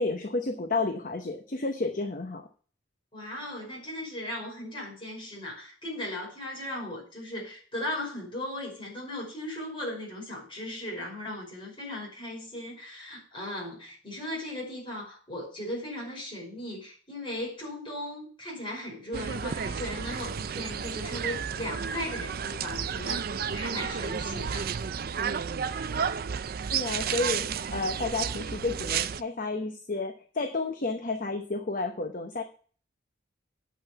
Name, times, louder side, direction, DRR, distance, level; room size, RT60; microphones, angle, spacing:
voice 1, 0.0-2.4 26.7-32.4, left 3 dB, 40° left, 5 dB, 0.9 m, -31 dB
voice 2, 3.1-24.7, left 1 dB, 25° left, -4 dB, 5.5 m, -37 dB
sound 1, 19.1-29.2, right 7 dB, 50° right, 0.4 m, -32 dB
8.7 x 5.8 x 6.9 m, 0.41 s
head